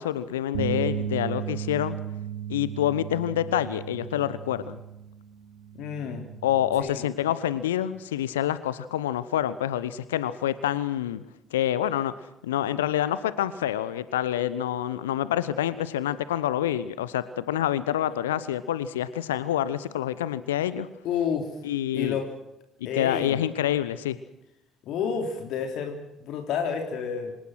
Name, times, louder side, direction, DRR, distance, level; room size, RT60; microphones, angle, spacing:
voice 1, 0.0-2.0 2.5-4.8 6.4-11.2 11.5-12.1 12.4-20.9 21.6-22.2 22.9-24.2, left 11 dB, 75° left, 16 dB, 0.9 m, -27 dB
Bass guitar, 0.5-6.8, right 9 dB, 75° right, 3.5 m, -35 dB
voice 2, 5.7-6.3 6.8-7.0 21.0-21.5 21.9-22.3 22.8-23.4 24.8-27.4, left 7 dB, 60° left, 4 dB, 3.2 m, -30 dB
26.0 x 19.5 x 6.3 m, 0.86 s
figure-of-eight pair, 50°, 0 cm